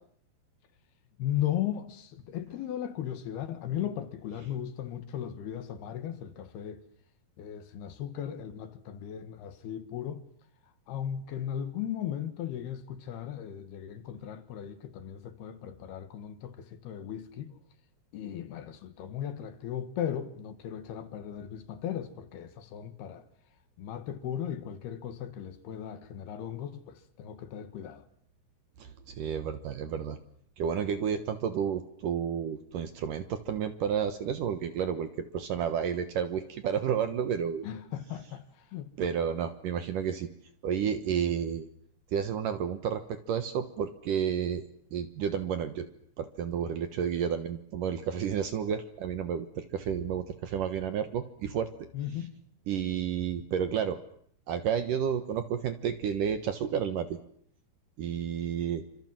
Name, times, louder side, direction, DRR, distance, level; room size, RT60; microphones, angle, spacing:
voice 1, 1.2-6.8 7.4-10.3 10.9-17.6 18.1-23.3 23.8-28.1 37.6-38.9 51.9-52.4, left 10 dB, 70° left, 3.5 m, -37 dB
voice 2, 28.8-30.2 30.6-37.7 39.0-40.3 40.6-41.7 42.1-44.7 44.9-45.9 46.2-51.7 52.7-54.0 54.5-57.2 58.0-58.8, right 8 dB, 65° right, 2.4 m, -31 dB
27.5 x 26.5 x 7.7 m
omnidirectional pair, 5.0 m